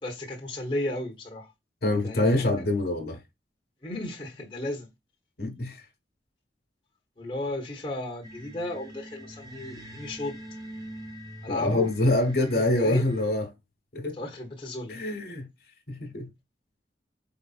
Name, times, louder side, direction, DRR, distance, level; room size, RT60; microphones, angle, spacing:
voice 1, 0.0-1.5 2.0-2.5 3.8-4.9 7.2-10.4 11.4-11.9 12.5-13.0 14.1-15.0, left 1 dB, 30° left, 1.0 m, -34 dB
voice 2, 1.8-3.2 5.4-5.8 11.5-13.5 13.9-14.2 14.9-15.5 15.9-16.3, left 2 dB, 60° left, 1.3 m, -25 dB
sound 1, 8.2-13.3, right 1 dB, 20° right, 0.9 m, -44 dB
4.7 x 4.0 x 2.4 m
head